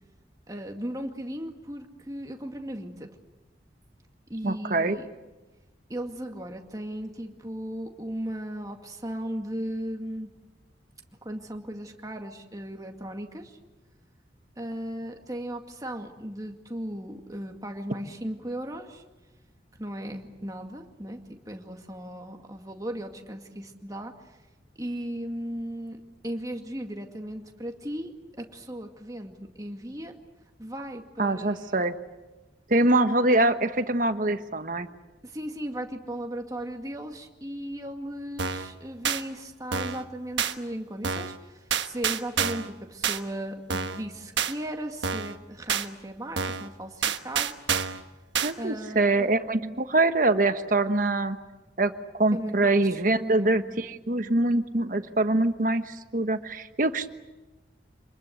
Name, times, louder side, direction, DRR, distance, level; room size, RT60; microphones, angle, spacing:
voice 1, 0.5-3.1 4.3-5.1 5.9-10.3 11.2-13.6 14.6-19.0 19.8-24.1 24.8-30.1 30.6-31.8 35.2-47.5 48.6-49.3 52.3-53.6, right 1 dB, 20° right, 3 dB, 2.2 m, -36 dB
voice 2, 4.4-5.0 31.2-31.9 32.7-34.9 48.4-51.4 51.8-57.1, right 2 dB, 45° right, 9 dB, 1.3 m, -24 dB
sound 1, 38.4-38.7 39.0-39.2 39.7-40.0 40.4-40.5 41.0-41.4 41.7-42.7 43.0-43.2 43.7-44.0 44.4-44.5 45.0-45.4 45.7-45.9 46.4-46.7 47.0-48.0 48.3-48.5, right 7 dB, 80° right, 1.3 m, -28 dB
26.5 x 21.0 x 8.3 m, 1.1 s
head